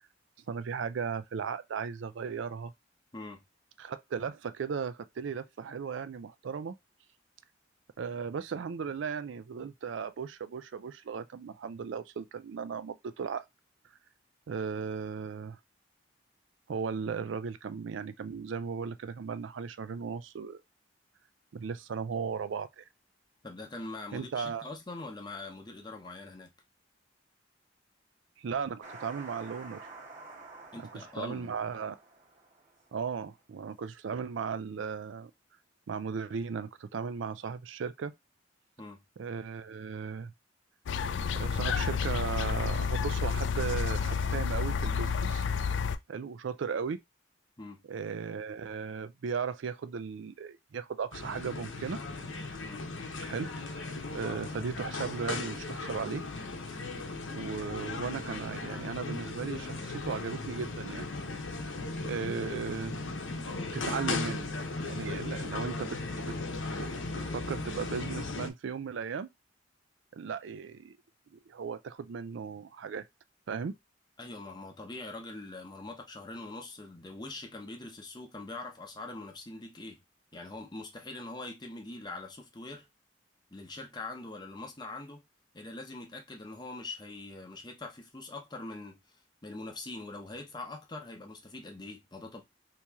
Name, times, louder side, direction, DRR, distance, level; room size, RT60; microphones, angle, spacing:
voice 1, 0.5-2.7 3.8-6.8 8.0-13.4 14.5-15.6 16.7-20.6 21.5-22.9 24.1-24.6 28.4-29.9 30.9-32.0 32.9-35.3 35.9-38.1 39.2-40.3 41.3-45.4 46.1-47.0 47.9-52.0 53.2-53.9 54.1-56.2 57.3-61.1 62.0-63.0 63.7-64.5 64.8-66.3 66.8-66.9 67.3-69.3 70.1-71.0 71.3-73.0 73.5-73.7, right 6 dB, 75° right, 0.4 m, -36 dB
voice 2, 3.1-3.4 23.4-26.5 30.7-31.6 38.8-39.0 47.6-47.8 52.6-52.9 74.2-80.0 80.3-82.9 83.5-85.2 85.5-89.2 89.4-92.4, left 2 dB, 20° left, 0.8 m, -43 dB
sound 1, 28.8-33.1, right 3 dB, 40° right, 0.9 m, -49 dB
sound 2, 40.9-46.0, left 6 dB, 70° left, 0.4 m, -30 dB
sound 3, 51.1-68.5, left 3 dB, 90° left, 0.8 m, -37 dB
2.9 x 2.9 x 3.5 m
head